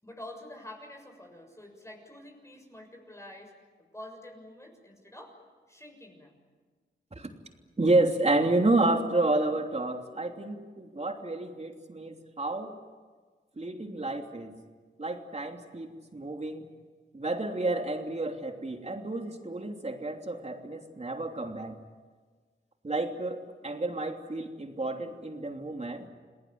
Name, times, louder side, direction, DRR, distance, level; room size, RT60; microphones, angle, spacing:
voice 1, 0.0-3.5 3.9-5.3 5.7-6.4, left 1 dB, 15° left, 2 dB, 6.8 m, -47 dB
voice 2, 7.8-12.7 13.6-14.5 15.0-16.7 17.1-21.8 22.8-26.1, right 2 dB, 35° right, 4 dB, 3.1 m, -30 dB
28.5 x 19.5 x 9.6 m, 1.5 s
wide cardioid pair, 65°, 19 cm